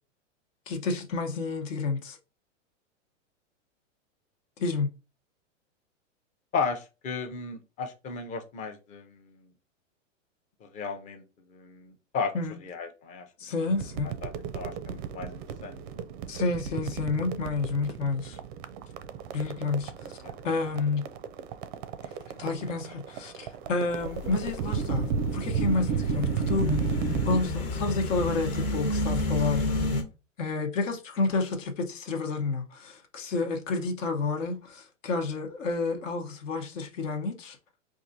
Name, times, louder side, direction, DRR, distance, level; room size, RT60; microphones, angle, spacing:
voice 1, 0.7-2.2 4.6-4.9 12.3-12.6 13.4-14.1 16.3-18.4 19.3-19.9 20.4-21.0 22.4-26.9 27.2-29.9 30.4-37.6, left 3 dB, 70° left, 1.1 m, -30 dB
voice 2, 6.5-9.4 10.6-11.2 11.5-12.3 12.6-13.3 14.0-15.8 20.0-20.3, left 5 dB, 20° left, 0.5 m, -35 dB
sound 1, 13.7-27.4, right 7 dB, 40° right, 0.4 m, -33 dB
sound 2, 23.9-30.0, left 2 dB, 50° left, 1.2 m, -31 dB
4.6 x 2.5 x 2.6 m
hypercardioid pair, 125°, 39 cm